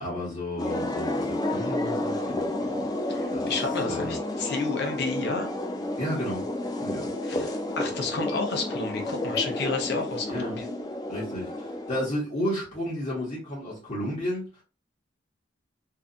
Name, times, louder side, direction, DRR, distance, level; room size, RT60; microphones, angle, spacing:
voice 1, 0.0-2.9 3.3-3.5 3.8-4.2 6.0-6.5 6.8-7.5 10.3-10.6 11.1-14.6, left 1 dB, 35° left, 1.1 m, -33 dB
sound 1, 0.6-12.1, left 1 dB, 20° left, 0.4 m, -31 dB
voice 2, 3.1-5.5 7.2-10.6, left 3 dB, 60° left, 0.7 m, -31 dB
2.7 x 2.4 x 2.4 m
head